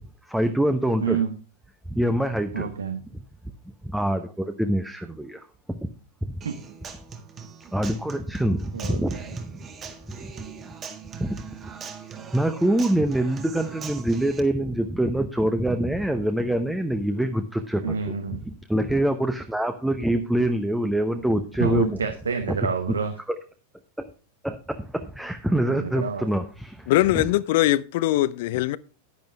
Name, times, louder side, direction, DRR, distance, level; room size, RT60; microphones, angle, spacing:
voice 1, 0.3-1.2 1.9-2.7 3.8-5.4 5.8-5.9 6.3-6.4 7.7-9.5 11.1-11.4 12.3-18.1 18.5-22.0 22.5-22.6 24.4-27.2, right 1 dB, 5° right, 0.9 m, -25 dB
voice 2, 1.0-1.4 2.5-3.0 6.4-6.6 8.7-9.2 17.8-18.4 21.6-23.1 25.7-26.3, right 6 dB, 70° right, 1.0 m, -28 dB
Human voice / Acoustic guitar, 6.4-14.4, right 6 dB, 25° right, 1.7 m, -41 dB
voice 3, 26.9-28.8, left 15 dB, 50° left, 0.5 m, -21 dB
10.5 x 10.5 x 3.5 m
figure-of-eight pair, 90°, 0 cm